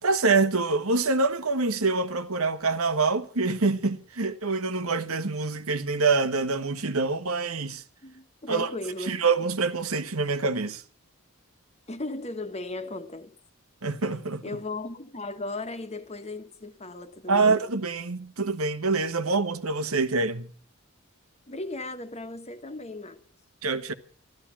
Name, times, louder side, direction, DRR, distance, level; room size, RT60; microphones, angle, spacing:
voice 1, 0.0-7.8 8.5-8.7 9.0-10.8 13.8-14.4 17.3-20.5 23.6-23.9, right 3 dB, 85° right, 1.3 m, -25 dB
voice 2, 8.0-9.2 11.9-13.3 14.4-17.6 21.5-23.2, left 2 dB, 30° left, 1.4 m, -36 dB
14.0 x 13.0 x 7.3 m
head